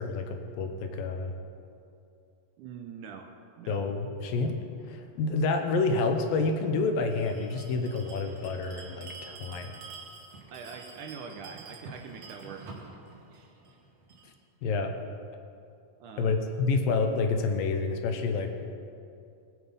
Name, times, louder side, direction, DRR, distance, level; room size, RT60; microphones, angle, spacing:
voice 1, 0.0-1.3 3.7-4.6 4.9-9.7 14.6-14.9 16.2-18.6, left 3 dB, 75° left, 5 dB, 2.6 m, -28 dB
voice 2, 2.6-3.8 10.5-12.7 13.3-13.6 16.0-16.4, right 6 dB, 75° right, 4 dB, 2.0 m, -44 dB
Bell, 7.1-14.3, right 4 dB, 55° right, 2.1 m, -47 dB
21.0 x 8.1 x 5.6 m, 2.6 s
omnidirectional pair, 4.2 m